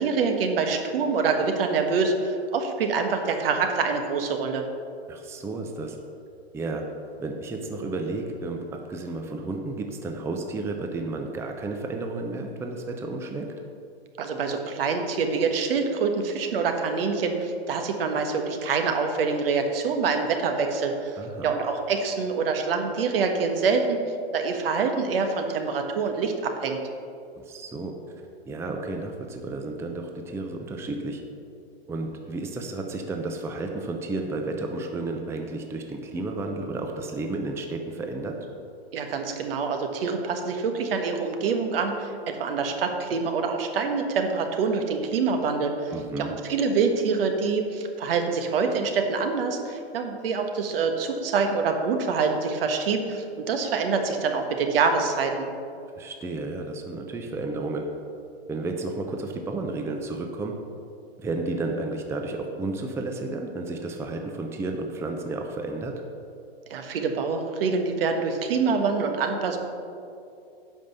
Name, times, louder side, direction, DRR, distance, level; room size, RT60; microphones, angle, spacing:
voice 1, 0.0-4.6 14.2-24.0 24.3-26.8 38.9-55.5 66.7-69.6, right 5 dB, 65° right, 5 dB, 1.4 m, -26 dB
voice 2, 5.1-6.0 6.5-6.8 7.2-13.5 21.2-21.5 27.4-27.9 28.5-31.2 31.9-38.4 45.9-46.3 56.0-57.9 58.5-60.5 61.2-65.9, right 2 dB, 10° right, 3 dB, 0.6 m, -32 dB
10.5 x 5.4 x 6.8 m, 2.6 s
hypercardioid pair, 125°, 32 cm